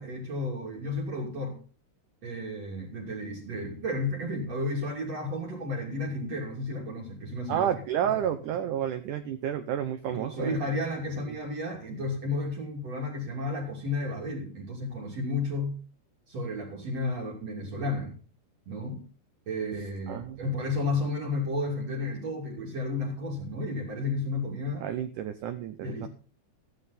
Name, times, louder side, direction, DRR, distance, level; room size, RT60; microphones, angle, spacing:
voice 1, 0.0-1.6 2.2-7.7 8.1-8.2 10.1-15.8 16.3-18.2 18.7-19.0 19.5-24.9 25.8-26.1, left 2 dB, 40° right, -2 dB, 3.6 m, -32 dB
voice 2, 7.5-10.6 11.3-11.4 20.1-20.4 24.8-26.1, right 10 dB, 75° right, 8 dB, 1.9 m, -30 dB
15.0 x 11.0 x 4.2 m, 0.38 s
omnidirectional pair, 4.7 m